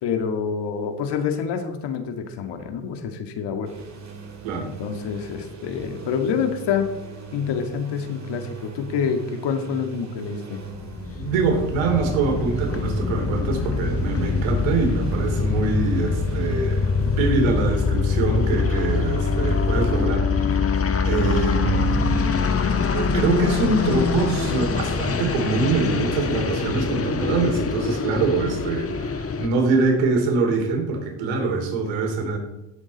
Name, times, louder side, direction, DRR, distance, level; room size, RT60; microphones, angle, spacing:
voice 1, 0.0-3.7 4.6-6.9 7.3-10.6, left 6 dB, 65° left, 6 dB, 2.0 m, -27 dB
sound 1, 3.6-20.1, right 6 dB, 35° right, 2.9 m, -39 dB
sound 2, 10.7-29.5, left 5 dB, 30° left, 1.4 m, -24 dB
voice 2, 11.1-20.7 21.0-22.3 22.9-32.4, right 4 dB, 75° right, 4 dB, 2.9 m, -24 dB
16.5 x 7.3 x 4.1 m, 0.95 s
supercardioid pair, 70°, 45 cm